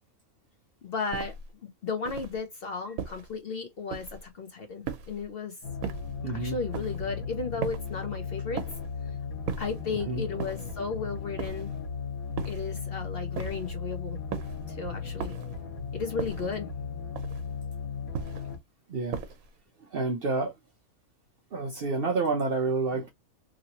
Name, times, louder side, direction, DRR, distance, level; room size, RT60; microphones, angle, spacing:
voice 1, 0.8-1.3 1.8-5.5 6.2-8.6 9.6-11.7 12.4-14.2 14.7-15.4 15.9-16.7, left 4 dB, 55° left, 0.7 m, -34 dB
sound 1, 1.1-1.5 2.0-2.4 3.0-3.4 3.9-4.3 4.8-5.3 5.8-6.2 6.7-7.1 7.6-8.0 8.6-8.9 9.5-9.9 10.4-10.8 11.4-11.8 12.4-12.8 13.4-13.8 14.3-14.7 15.2-15.6 16.2-16.6 17.2-17.6 18.1-18.6 19.1-19.5, right 7 dB, 80° right, 1.2 m, -37 dB
sound 2, 5.6-18.6, left 5 dB, 80° left, 1.4 m, -36 dB
voice 2, 6.2-6.6 10.1-10.3 18.9-19.2 19.9-20.5 21.5-23.1, right 3 dB, 55° right, 0.7 m, -28 dB
3.0 x 2.7 x 2.8 m
omnidirectional pair, 1.5 m